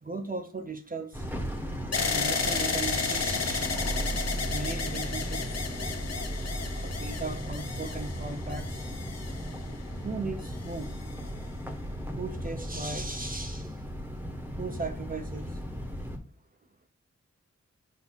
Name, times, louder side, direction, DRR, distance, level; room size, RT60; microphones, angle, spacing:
voice 1, 0.0-1.2 2.0-3.8 4.5-5.6 6.7-8.8 10.0-11.0 12.2-13.7 14.6-15.5, right 3 dB, 30° right, 0.7 m, -37 dB
sound 1, 1.1-16.2, equal, 5° right, 1.0 m, -36 dB
sound 2, 1.9-9.9 10.6-11.3, left 5 dB, 60° left, 0.8 m, -33 dB
6.2 x 2.7 x 5.6 m
wide cardioid pair, 100°, 29 cm